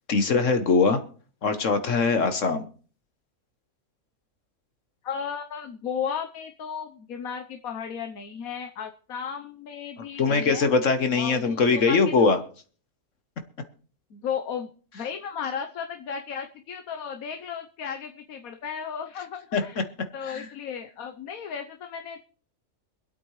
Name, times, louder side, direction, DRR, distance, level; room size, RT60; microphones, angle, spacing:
voice 1, 0.1-1.0 1.4-2.7 10.2-12.4 19.5-19.6 20.2-20.5, left 4 dB, 65° left, 8 dB, 1.4 m, -22 dB
voice 2, 5.0-10.7 11.2-12.3 14.1-14.7 14.9-19.8 20.1-22.2, left 7 dB, 85° left, 6 dB, 1.4 m, -35 dB
25.5 x 8.6 x 3.2 m, 0.42 s
omnidirectional pair, 1.5 m